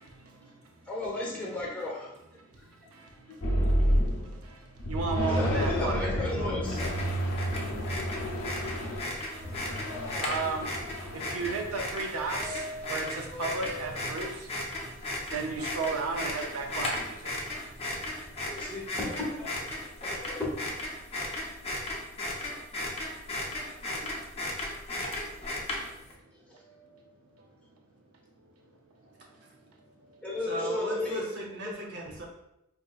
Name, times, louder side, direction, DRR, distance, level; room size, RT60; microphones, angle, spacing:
voice 1, 0.0-0.7 2.7-6.2 7.1-18.9 23.4-24.2 26.5-27.5 29.0-29.4 29.8-30.3, right 4 dB, 85° right, 2 dB, 0.5 m, -37 dB
voice 2, 0.9-2.1 2.5-2.7 3.2-3.3 5.3-6.9 8.7-8.8 18.5-19.5 20.0-20.5 30.2-31.2, left 2 dB, 5° left, -6 dB, 1.0 m, -34 dB
sound 1, 3.4-4.4 4.8-11.8, equal, 80° left, 0.7 m, -30 dB
sound 2, 6.7-26.1, left 1 dB, 30° left, 0.7 m, -36 dB
sound 3, 9.3-10.2 12.4-14.0, left 2 dB, 20° right, 1.0 m, -42 dB
voice 3, 30.5-32.2, right 1 dB, 55° right, -1 dB, 0.8 m, -38 dB
4.6 x 2.7 x 2.4 m, 0.84 s
head